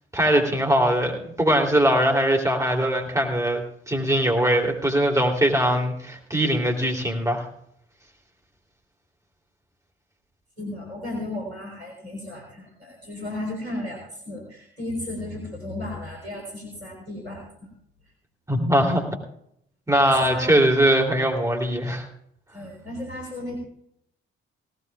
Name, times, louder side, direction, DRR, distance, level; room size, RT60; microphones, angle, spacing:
voice 1, 0.1-7.5 18.5-19.0 19.9-22.1, right 1 dB, 10° right, 2 dB, 3.2 m, -21 dB
voice 2, 10.6-17.4 20.0-20.6 22.5-23.6, left 1 dB, 85° right, 0 dB, 3.7 m, -34 dB
17.5 x 17.0 x 2.4 m, 0.73 s
figure-of-eight pair, 40°, 31 cm